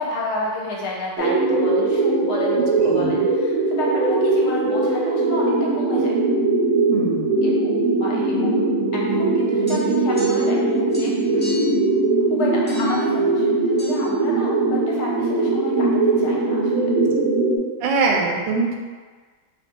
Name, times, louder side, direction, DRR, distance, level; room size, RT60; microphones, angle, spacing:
voice 1, 0.0-6.1 7.4-8.6 8.9-11.6 12.3-15.9 16.2-16.9, left 2 dB, 70° left, -4 dB, 1.2 m, -31 dB
sound 1, 1.2-17.6, right 3 dB, 65° right, 0.9 m, -20 dB
voice 2, 2.8-3.2 6.9-7.5 17.1-17.2 17.8-18.8, right 4 dB, 80° right, 1 dB, 1.2 m, -23 dB
sound 2, 9.7-10.6 10.9-11.8 12.7-13.0 13.8-13.9, equal, 10° left, 0.8 m, -38 dB
2.9 x 2.5 x 4.3 m, 1.5 s
omnidirectional pair, 1.9 m